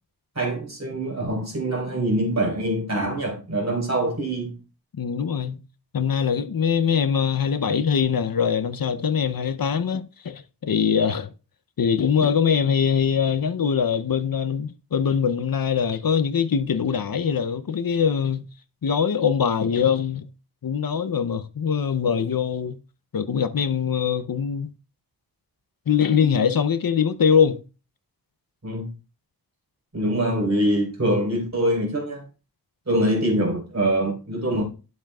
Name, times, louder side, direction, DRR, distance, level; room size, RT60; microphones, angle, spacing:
voice 1, 0.4-4.6 28.6-28.9 29.9-32.2 32.9-34.6, right 1 dB, 40° right, 4.0 m, -24 dB
voice 2, 5.0-5.6 5.9-11.3 11.8-18.5 18.8-20.3 20.6-22.8 23.1-24.7 25.9-27.6, left 7 dB, 60° left, 0.7 m, -22 dB
11.5 x 7.4 x 2.3 m
wide cardioid pair, 70°, 40 cm